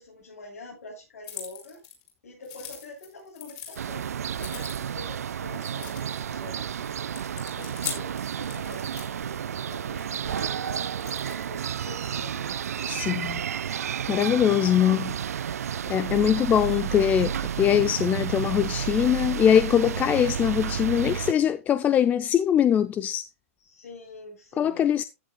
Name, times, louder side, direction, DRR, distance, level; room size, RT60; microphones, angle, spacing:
voice 1, 0.0-1.8 2.2-4.1 4.4-6.9 7.3-12.6 16.0-16.4 23.6-24.9, left 2 dB, 80° left, 7.7 m, -45 dB
sound 1, 1.2-2.1 2.4-3.8 4.3-5.0 5.5-6.4 6.8-9.1 10.0-12.9, left 9 dB, 40° left, 5.0 m, -41 dB
sound 2, 3.8-21.3, right 8 dB, 85° right, 0.4 m, -31 dB
voice 2, 12.9-13.4 14.1-15.1 15.9-23.3 24.6-25.0, left 9 dB, 20° left, 0.5 m, -22 dB
15.0 x 10.5 x 2.3 m
hypercardioid pair, 135°, 8 cm